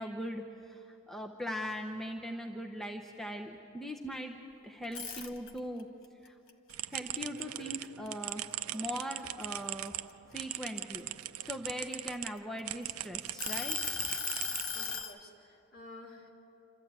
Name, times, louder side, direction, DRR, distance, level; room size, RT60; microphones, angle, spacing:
voice 1, 0.0-4.4 4.6-5.9 6.2-6.4 6.9-8.4 8.7-9.9 10.3-11.1 11.4-14.1, equal, ahead, 1 dB, 0.8 m, -40 dB
sound 1, 4.8-5.8 6.3-8.1 8.5-8.8 9.2-11.0 11.7-12.8 13.4-15.1, left 5 dB, 65° left, 1.2 m, -37 dB
sound 2, 6.7-12.3 12.7-15.0, right 14 dB, 75° right, 0.5 m, -40 dB
voice 2, 14.7-16.3, left 2 dB, 45° left, -1 dB, 2.9 m, -51 dB
27.0 x 14.0 x 8.8 m, 2.9 s
head